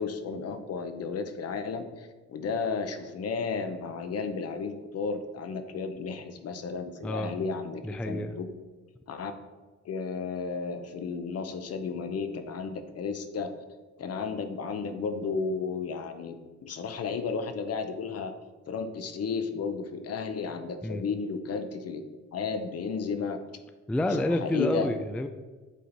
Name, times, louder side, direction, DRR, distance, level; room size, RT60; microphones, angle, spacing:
voice 1, 0.0-8.5 9.1-9.3 9.9-13.5 14.0-16.4 16.6-18.3 18.7-22.0 22.3-23.4 24.3-24.9, left 5 dB, 55° left, 8 dB, 0.8 m, -33 dB
voice 2, 7.0-7.3 7.8-8.3 20.8-21.0 23.9-25.3, left 1 dB, 5° left, 8 dB, 0.3 m, -29 dB
8.3 x 4.3 x 4.0 m, 1.3 s
cardioid pair, 90°, 30 cm